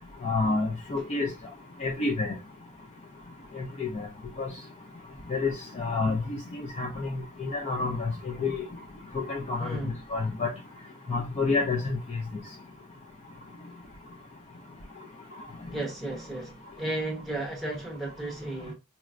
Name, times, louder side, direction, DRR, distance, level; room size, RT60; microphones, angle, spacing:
voice 1, 0.2-1.3 1.8-2.3 3.6-4.1 4.4-4.5 5.3-6.2 6.5-7.1 7.4-8.1 8.4-8.6 9.1-9.8 10.1-10.5 11.1-12.0, left 3 dB, 30° left, 0.4 m, -28 dB
voice 2, 9.6-10.0 15.7-18.7, right 2 dB, ahead, 0.9 m, -34 dB
4.1 x 2.1 x 2.4 m
head